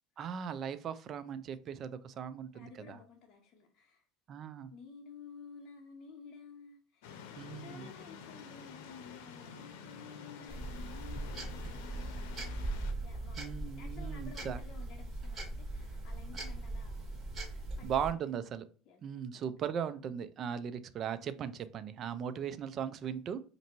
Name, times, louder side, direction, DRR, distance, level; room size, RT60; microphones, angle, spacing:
voice 1, 0.2-3.0 4.3-4.7 7.4-7.9 13.4-14.6 17.8-18.6 19.0-23.4, right 8 dB, 40° right, 12 dB, 0.4 m, -38 dB
voice 2, 2.5-4.0 4.7-17.2 17.8-18.3 18.9-19.4, left 6 dB, 50° left, 0 dB, 0.8 m, -53 dB
sound 1, 7.0-12.9, left 6 dB, 90° left, 0.6 m, -49 dB
sound 2, 10.5-18.1, right 2 dB, 15° right, 1.7 m, -40 dB
5.3 x 2.6 x 2.9 m, 0.38 s
cardioid pair, 135°, 0 cm